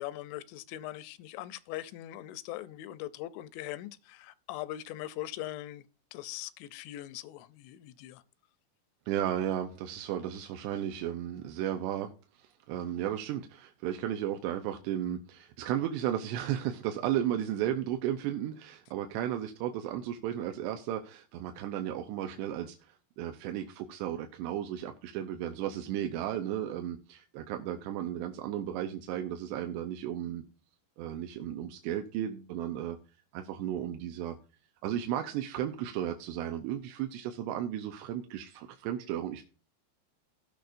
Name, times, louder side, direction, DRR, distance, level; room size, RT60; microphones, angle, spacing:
voice 1, 0.0-5.8 6.1-8.2, left 14 dB, 90° left, 3.1 m, -41 dB
voice 2, 9.1-12.1 12.4-30.4 31.0-33.0 33.3-34.4 34.8-39.4, right 11 dB, 80° right, 2.8 m, -34 dB
18.0 x 6.5 x 2.5 m
omnidirectional pair, 5.3 m